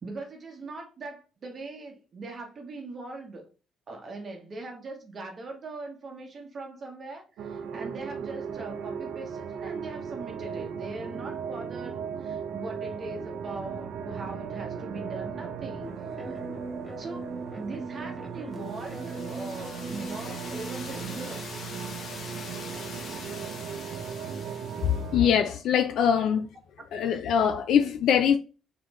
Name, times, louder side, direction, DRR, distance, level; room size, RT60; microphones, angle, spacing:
voice 1, 0.0-3.4 3.9-16.5 17.0-17.3 17.5-21.7 26.1-26.2, right 3 dB, 30° right, 0.9 m, -41 dB
sound 1, 7.4-25.4, right 7 dB, 80° right, 0.5 m, -37 dB
sound 2, 15.8-21.3, right 2 dB, ahead, 1.0 m, -40 dB
sound 3, 18.6-25.1, left 4 dB, 45° left, 0.8 m, -43 dB
voice 2, 24.9-26.5 26.9-28.4, left 8 dB, 65° left, 0.3 m, -23 dB
3.8 x 3.7 x 3.0 m
cardioid pair, 160°, 0 cm